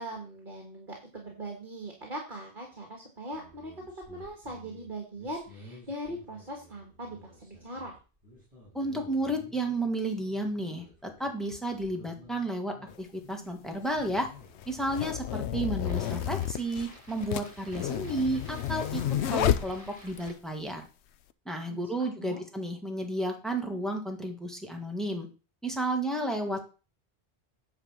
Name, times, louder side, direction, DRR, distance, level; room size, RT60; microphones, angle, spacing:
voice 1, 0.0-3.7 4.1-7.9 21.7-22.4, right 1 dB, 50° right, 0 dB, 2.1 m, -40 dB
sound 1, 3.3-20.3, equal, 30° right, 6.2 m, -53 dB
voice 2, 8.7-14.3 14.7-20.8 21.5-25.3 25.6-26.6, right 1 dB, ahead, 2 dB, 1.9 m, -32 dB
sound 2, 12.9-13.0 13.9-20.3, left 11 dB, 90° left, 0.9 m, -31 dB
9.7 x 4.1 x 7.4 m, 0.34 s
omnidirectional pair, 1.1 m